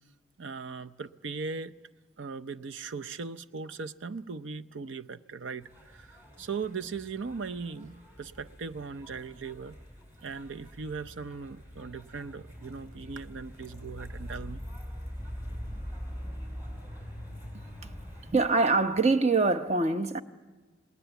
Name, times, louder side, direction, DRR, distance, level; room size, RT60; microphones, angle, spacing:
voice 1, 0.4-1.7 2.2-9.7 10.2-14.6, right 4 dB, 80° right, 0.7 m, -39 dB
sound 1, 5.6-18.3, equal, 10° right, 5.6 m, -43 dB
voice 2, 18.3-20.2, right 3 dB, 35° right, 0.9 m, -24 dB
28.5 x 19.5 x 8.1 m
head